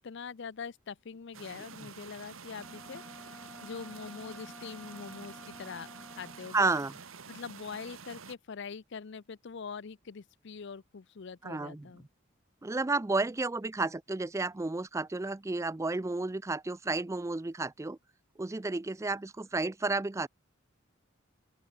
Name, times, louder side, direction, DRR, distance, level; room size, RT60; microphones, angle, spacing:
voice 1, 0.0-6.7 7.3-12.0, left 5 dB, 60° left, 0.5 m, -43 dB
sound 1, 1.3-8.3, right 5 dB, 85° right, 2.1 m, -49 dB
Wind instrument woodwind instrument, 2.5-6.6, left 1 dB, 5° left, 1.1 m, -51 dB
voice 2, 6.5-6.9 11.4-11.9 12.6-18.0 18.4-20.3, right 3 dB, 15° right, 0.4 m, -31 dB
open air
head